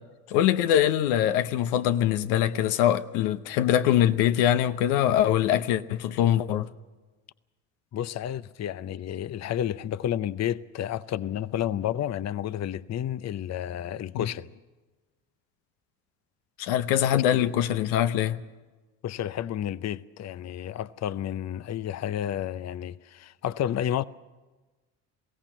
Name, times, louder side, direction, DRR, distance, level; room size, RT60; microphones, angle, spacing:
voice 1, 0.3-6.7 14.1-14.3 16.6-18.4, left 11 dB, 80° left, 0.9 m, -23 dB
voice 2, 7.9-14.5 17.1-17.5 19.0-24.0, left 10 dB, 40° left, 0.7 m, -31 dB
21.5 x 16.5 x 9.0 m
hypercardioid pair, 65°, 40 cm